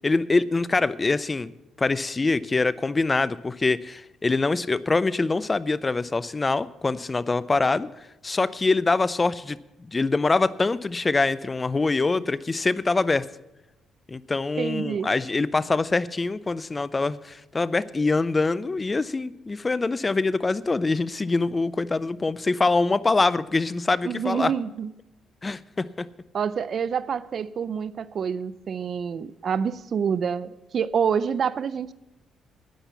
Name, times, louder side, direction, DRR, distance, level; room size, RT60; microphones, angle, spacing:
voice 1, 0.0-1.5 1.8-7.9 8.2-13.2 14.1-24.5 25.4-26.1, left 3 dB, 25° left, 18 dB, 0.4 m, -24 dB
voice 2, 14.6-15.1 24.0-24.9 26.3-31.9, right 7 dB, 55° right, 17 dB, 0.5 m, -27 dB
10.0 x 10.0 x 6.9 m, 0.93 s
cardioid pair, 90°, 0 cm